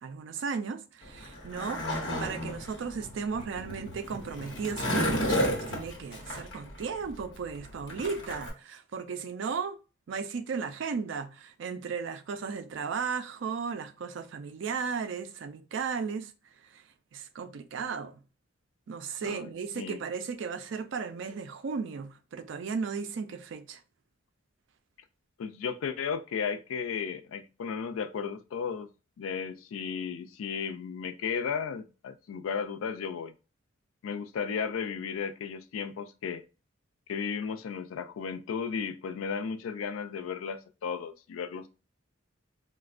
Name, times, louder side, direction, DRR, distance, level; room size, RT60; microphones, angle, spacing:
voice 1, 0.0-1.9 2.2-9.8 10.1-16.3 16.7-16.8 17.1-18.2 18.9-23.8, right 5 dB, 65° right, 0.4 m, -35 dB
Skateboard, 1.0-8.5, equal, 65° left, 1.0 m, -33 dB
voice 2, 19.2-20.0 25.4-28.9 29.2-33.3 34.0-36.4 37.1-41.7, left 6 dB, 85° left, 0.3 m, -34 dB
4.1 x 2.1 x 2.4 m
head